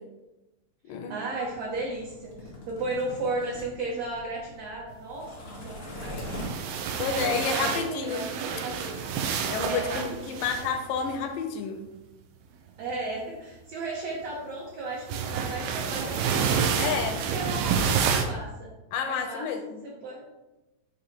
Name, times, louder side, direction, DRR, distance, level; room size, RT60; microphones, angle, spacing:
voice 1, 0.9-6.4 7.1-9.0 9.6-10.4 12.8-16.7 17.1-18.7 19.1-19.5 19.8-20.3, right 2 dB, 70° right, -4 dB, 1.6 m, -35 dB
sound 1, 1.3-6.9, left 1 dB, 45° left, 0.9 m, -42 dB
sound 2, 6.1-11.2 12.9-13.2 15.1-18.3, right 6 dB, 85° right, 2.5 m, -29 dB
voice 2, 7.0-8.3 9.5-11.8 16.8-17.2 18.9-19.8, left 6 dB, 80° left, 5 dB, 2.1 m, -30 dB
8.2 x 2.8 x 4.3 m, 1.0 s
omnidirectional pair, 4.2 m